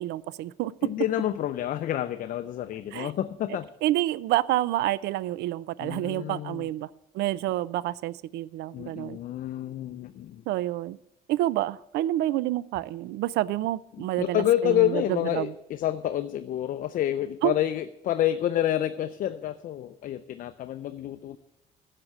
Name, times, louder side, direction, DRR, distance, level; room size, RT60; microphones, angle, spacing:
voice 1, 0.0-0.7 2.9-3.1 3.8-6.9 7.1-9.2 10.5-11.0 11.3-15.0 15.3-15.5 17.4-17.5, right 15 dB, 80° right, 21 dB, 0.4 m, -28 dB
voice 2, 0.8-3.7 5.8-6.7 8.7-10.4 14.2-21.4, left 12 dB, 55° left, 10 dB, 0.5 m, -28 dB
11.0 x 6.7 x 7.2 m, 0.88 s
cardioid pair, 110°, 17 cm